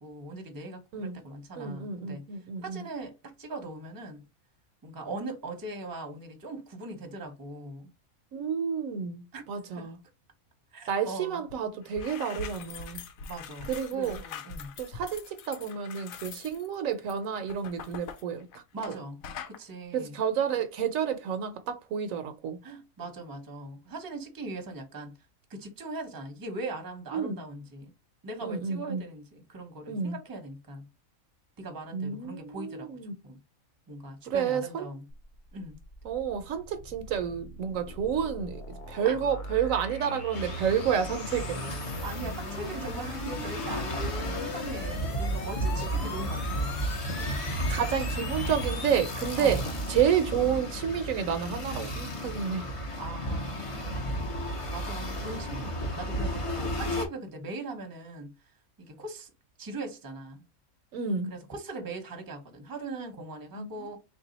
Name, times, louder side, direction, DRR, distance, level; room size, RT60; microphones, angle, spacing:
voice 1, 0.0-2.2 2.6-4.2 4.8-7.9 9.3-9.4 9.8-9.9 10.7-11.4 13.3-14.8 18.7-19.2 19.5-20.2 22.6-25.1 25.5-27.9 28.2-30.9 31.6-33.4 33.9-35.0 35.5-35.8 39.0-39.2 42.0-47.4 49.4-49.8 52.9-58.3 58.8-59.3 59.6-60.4 61.3-64.0, right 2 dB, 20° right, 0.7 m, -40 dB
voice 2, 1.6-2.9 8.3-10.0 10.9-13.0 13.7-14.2 14.8-18.5 19.9-22.6 27.1-27.4 28.4-29.0 29.9-30.1 31.9-33.1 34.3-34.9 36.0-38.6 38.9-41.7 47.7-49.6 49.9-52.6 60.9-61.3 63.5-63.9, right 7 dB, 70° right, 1.0 m, -30 dB
sound 1, 11.5-11.6 11.8-19.0 19.2-19.6, left 5 dB, 75° left, 1.0 m, -43 dB
sound 2, 35.1-49.2, left 2 dB, 55° left, 1.0 m, -41 dB
sound 3, 40.3-57.1, equal, 30° left, 0.6 m, -33 dB
3.4 x 2.7 x 3.9 m
omnidirectional pair, 1.5 m